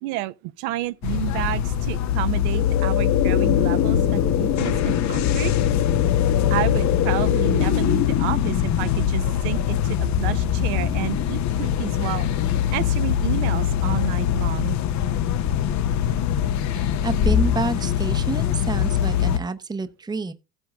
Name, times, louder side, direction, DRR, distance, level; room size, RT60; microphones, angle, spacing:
voice 1, 0.0-5.5 6.5-14.8, right 16 dB, 65° right, 0.8 m, -30 dB
sound 1, 1.0-19.4, left 10 dB, 35° left, 0.7 m, -23 dB
sound 2, 2.2-13.3, left 9 dB, 60° left, 1.8 m, -26 dB
voice 2, 16.7-20.3, right 3 dB, 10° right, 0.7 m, -28 dB
15.5 x 8.1 x 2.4 m
hypercardioid pair, 90°, 47 cm